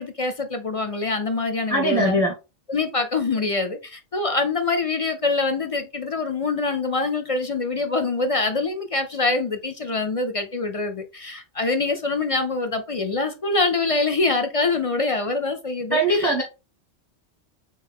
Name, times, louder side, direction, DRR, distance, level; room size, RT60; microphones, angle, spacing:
voice 1, 0.0-2.2 2.7-16.4, left 3 dB, 40° left, 0.5 m, -25 dB
voice 2, 1.7-2.3 15.9-16.4, right 1 dB, ahead, 1.1 m, -20 dB
4.1 x 3.6 x 3.6 m
omnidirectional pair, 1.2 m